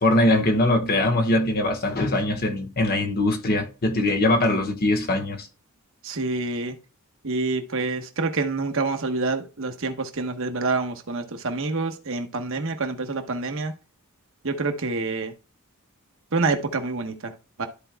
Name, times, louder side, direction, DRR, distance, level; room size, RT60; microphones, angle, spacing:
voice 1, 0.0-5.5, left 1 dB, 45° left, 1.3 m, -22 dB
voice 2, 6.0-6.8 7.2-13.7 14.4-15.3 16.3-17.3 17.6-17.7, right 3 dB, 60° right, 1.1 m, -27 dB
13.5 x 4.5 x 2.2 m
head